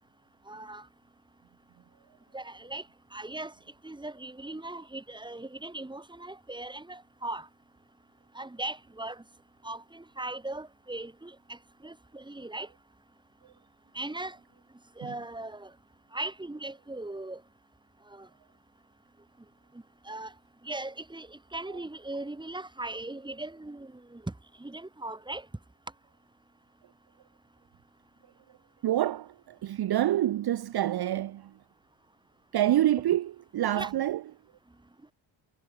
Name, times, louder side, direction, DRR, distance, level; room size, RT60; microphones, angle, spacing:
voice 1, 0.5-0.9 2.3-3.5 3.8-7.5 8.3-9.2 9.6-12.7 13.9-14.4 15.0-15.7 16.1-17.4 18.1-18.3 19.7-20.3 20.6-25.5 33.7-33.9, right 2 dB, 10° right, 4.3 m, -39 dB
voice 2, 28.8-31.6 32.5-34.2, right 13 dB, 55° right, 0.8 m, -27 dB
wide cardioid pair, 160°, 47 cm